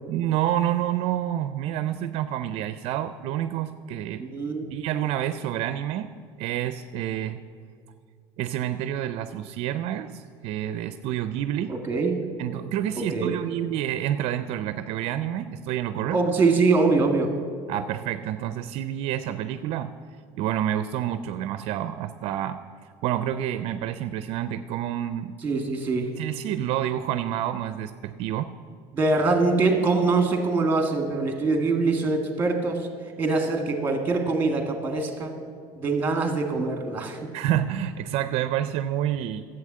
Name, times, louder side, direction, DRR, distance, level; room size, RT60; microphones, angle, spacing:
voice 1, 0.1-4.2 4.7-6.1 6.4-7.4 8.4-11.8 12.4-16.2 17.7-19.9 20.3-22.6 23.0-25.4 26.2-28.6 37.3-39.4, right 11 dB, 60° right, 11 dB, 0.4 m, -28 dB
voice 2, 4.2-4.7 11.7-12.2 13.1-13.4 16.1-17.3 25.4-26.1 28.9-32.9 33.2-35.3 35.8-37.3, right 3 dB, 15° right, 4 dB, 1.8 m, -23 dB
11.5 x 8.0 x 7.5 m, 2.3 s
cardioid pair, 135°, 12 cm